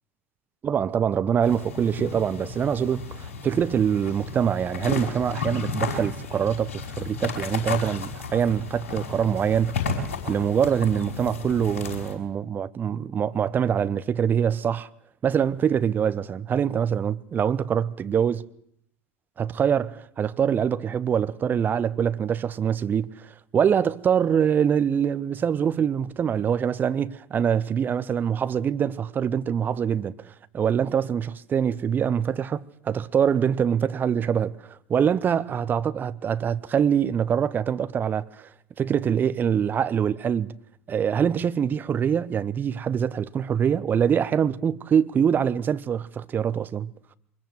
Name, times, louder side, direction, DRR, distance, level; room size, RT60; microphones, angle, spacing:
voice 1, 0.6-9.9 10.3-14.9 15.2-18.4 19.4-30.1 30.5-38.5 38.8-40.5 40.9-46.9, right 8 dB, 25° right, 1.0 m, -24 dB
sound 1, 1.4-12.1, left 4 dB, 65° left, 5.5 m, -33 dB
24.0 x 21.5 x 7.7 m
figure-of-eight pair, 80°, 7 cm